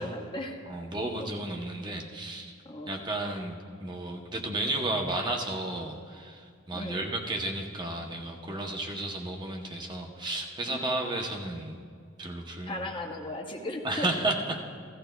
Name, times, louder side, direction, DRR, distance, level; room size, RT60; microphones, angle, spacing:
voice 1, 0.0-0.6 1.2-1.3 2.6-3.0 6.7-7.1 10.7-10.9 12.7-14.1, left 1 dB, 25° left, 2 dB, 0.7 m, -37 dB
voice 2, 0.7-2.6 2.9-11.8 12.2-12.9 13.8-14.6, right 2 dB, 20° right, 1 dB, 0.8 m, -33 dB
16.0 x 14.0 x 2.3 m, 2.1 s
head